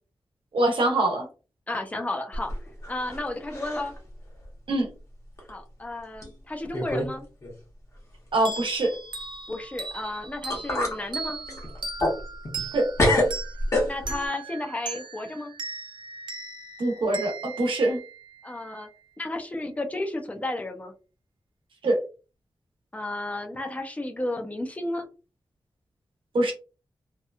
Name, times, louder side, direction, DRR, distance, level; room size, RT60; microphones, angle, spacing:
voice 1, 0.5-1.3 4.7-4.9 8.3-8.9 12.7-12.9 16.8-18.0 21.8-22.0 26.3-26.5, right 2 dB, 85° right, 2 dB, 0.9 m, -23 dB
voice 2, 1.7-2.5 2.9-3.9 5.5-7.3 9.5-11.4 13.9-15.5 18.4-18.9 19.2-20.9 22.9-25.1, left 2 dB, 15° left, 4 dB, 0.5 m, -32 dB
sound 1, 2.3-3.2 3.5-4.0 4.4-4.5 5.4-5.5 6.2-6.3 6.7-7.1 7.4-7.5 10.0-10.1 10.5-11.0 11.5-12.7 13.0-14.3, left 1 dB, 35° left, 0.9 m, -26 dB
sound 2, 8.5-18.7, right 4 dB, 65° right, 0.4 m, -38 dB
2.8 x 2.2 x 2.3 m, 0.34 s
wide cardioid pair, 130°, 8 cm